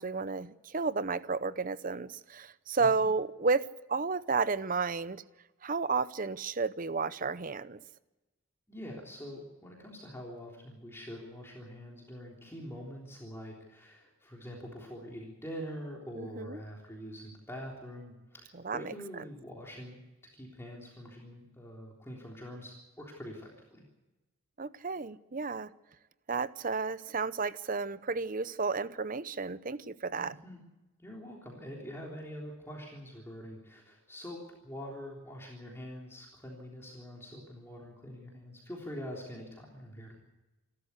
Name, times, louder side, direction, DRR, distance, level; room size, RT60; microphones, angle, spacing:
voice 1, 0.0-5.2 5.6-7.8 16.2-16.6 18.6-18.9 24.6-25.7 26.3-30.3, right 4 dB, 40° right, 0.7 m, -32 dB
voice 2, 8.7-20.0 20.3-23.8 30.2-30.6 31.0-40.2, equal, 10° left, 3.5 m, -45 dB
28.0 x 13.0 x 8.3 m
head